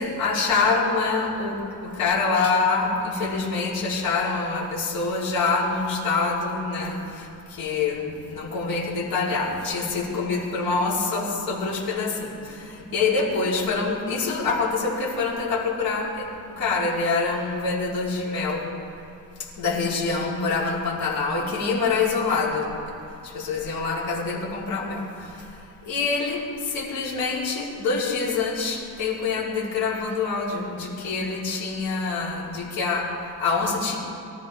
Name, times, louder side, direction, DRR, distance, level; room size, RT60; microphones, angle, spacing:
voice 1, 0.0-18.7 19.4-23.0 23.2-25.6 25.8-34.0, left 4 dB, 85° left, -5 dB, 4.4 m, -26 dB
23.5 x 14.5 x 3.7 m, 2.7 s
cardioid pair, 135°, 35 cm